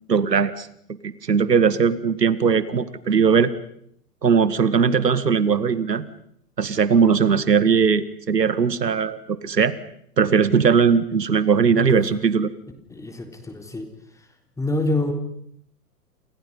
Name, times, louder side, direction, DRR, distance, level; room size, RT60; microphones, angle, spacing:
voice 1, 0.1-0.7 1.0-3.5 4.2-6.1 6.6-9.8 10.2-12.5, right 6 dB, 90° right, 14 dB, 2.2 m, -19 dB
voice 2, 11.7-12.1 12.9-13.9 14.6-15.1, left 2 dB, 5° left, 6 dB, 3.7 m, -26 dB
29.0 x 29.0 x 5.5 m, 0.69 s
hypercardioid pair, 130°, 47 cm